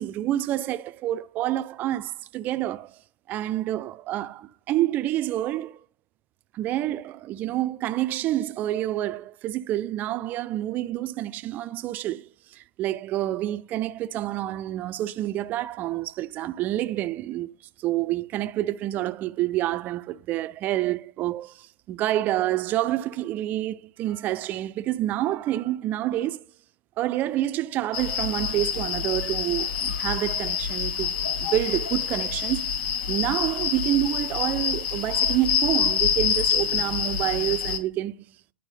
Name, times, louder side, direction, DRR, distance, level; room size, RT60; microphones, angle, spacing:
voice 1, 0.0-3.0 3.3-5.8 6.5-17.5 17.8-26.4 27.0-32.7 33.1-38.3, right 14 dB, 30° right, 0.4 m, -28 dB
sound 1, 27.9-37.8, left 7 dB, 60° left, 1.1 m, -27 dB
9.7 x 4.6 x 3.2 m
hypercardioid pair, 130°, 6 cm